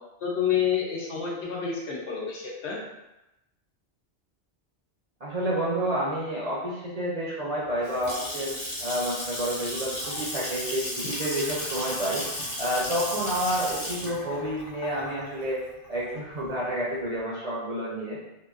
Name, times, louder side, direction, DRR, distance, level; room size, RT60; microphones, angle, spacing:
voice 1, 0.2-2.8, left 8 dB, 80° left, -3 dB, 1.0 m, -28 dB
voice 2, 5.2-8.5 8.8-12.2 12.6-15.6 15.9-18.2, right 1 dB, 50° right, -6 dB, 0.5 m, -29 dB
Water tap faucet / Sink (filling or washing) / Splash splatter, 7.6-16.5, left 1 dB, 45° left, 0.7 m, -34 dB
2.9 x 2.5 x 2.4 m, 0.94 s
omnidirectional pair, 1.1 m